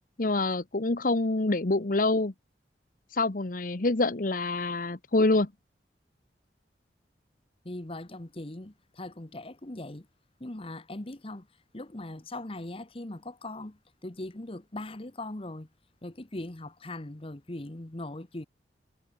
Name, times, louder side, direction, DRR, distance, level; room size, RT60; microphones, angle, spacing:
voice 1, 0.2-2.3 3.1-5.5, left 2 dB, 50° left, 1.0 m, -26 dB
voice 2, 7.6-10.1 10.4-11.5 11.7-15.7 16.0-18.5, left 1 dB, 30° left, 1.2 m, -40 dB
head